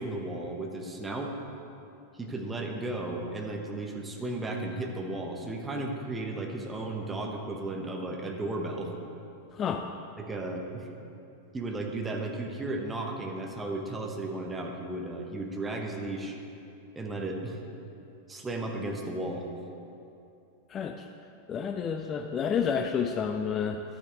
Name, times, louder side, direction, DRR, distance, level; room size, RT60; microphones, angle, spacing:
voice 1, 0.0-1.3 2.1-8.9 10.2-10.9 11.5-16.4 16.9-17.6 18.3-19.5, right 2 dB, 10° right, 1 dB, 1.2 m, -34 dB
voice 2, 9.5-9.9 20.7-21.1 21.5-23.8, left 7 dB, 25° left, 6 dB, 0.4 m, -30 dB
12.0 x 9.6 x 3.5 m, 2.7 s
figure-of-eight pair, 90°, 0 cm